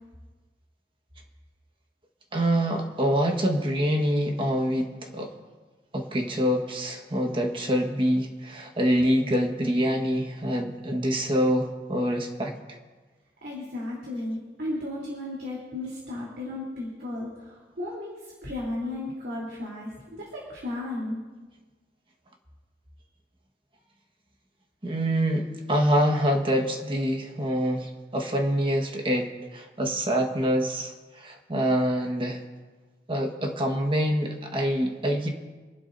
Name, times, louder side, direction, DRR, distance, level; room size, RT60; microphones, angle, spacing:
voice 1, 2.3-5.3 5.9-12.5 24.8-32.4 33.1-35.3, equal, 30° right, 2 dB, 1.4 m, -25 dB
voice 2, 13.4-21.2, left 1 dB, 60° right, -5 dB, 3.4 m, -34 dB
28.0 x 12.0 x 2.7 m, 1.3 s
head